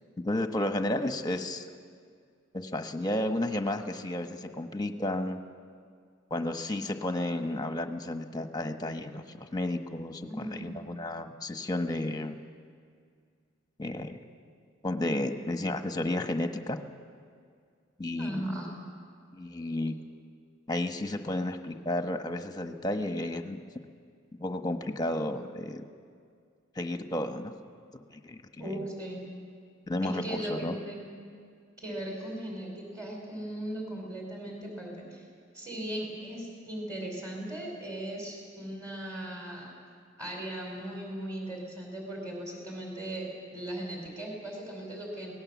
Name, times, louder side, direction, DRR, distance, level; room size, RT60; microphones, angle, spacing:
voice 1, 0.2-1.7 2.5-5.4 6.3-12.4 13.8-14.1 14.8-16.8 18.0-18.5 19.3-19.9 20.7-23.6 24.4-25.8 26.8-27.5 27.9-28.7 29.9-30.8, left 1 dB, 20° left, 6 dB, 1.2 m, -32 dB
voice 2, 10.3-10.6 18.2-18.7 28.6-29.2 30.0-31.0 31.8-35.2 35.5-39.7 40.2-45.3, right 1 dB, 20° right, -1 dB, 4.8 m, -38 dB
25.0 x 18.5 x 7.3 m, 2.1 s
head